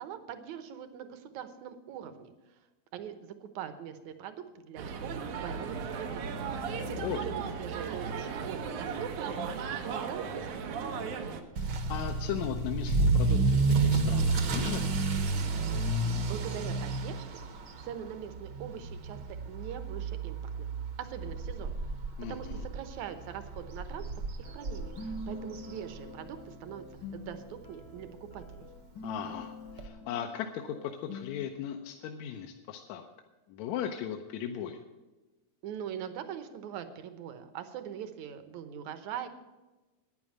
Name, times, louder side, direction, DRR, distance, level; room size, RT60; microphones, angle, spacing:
voice 1, 0.0-2.3 2.9-6.3 7.2-11.2 16.0-17.4 17.8-20.7 21.0-21.7 22.3-24.1 24.4-26.8 27.1-28.7 35.6-39.3, right 9 dB, 75° right, 9 dB, 2.3 m, -42 dB
sound 1, 4.8-11.4, right 5 dB, 90° right, 2.5 m, -36 dB
voice 2, 6.9-7.2 11.6-14.9 22.2-22.6 29.0-33.1 33.5-34.8, left 9 dB, 75° left, 4 dB, 2.0 m, -37 dB
Motor vehicle (road) / Accelerating revving vroom, 11.6-26.4 26.7-27.1 27.6-27.7 28.0-28.1 28.4-28.5 29.8-29.9, right 3 dB, 60° right, 1.2 m, -31 dB
sound 2, 24.4-31.5, left 2 dB, 55° left, 1.6 m, -45 dB
10.5 x 9.7 x 7.7 m, 1.1 s
omnidirectional pair, 3.4 m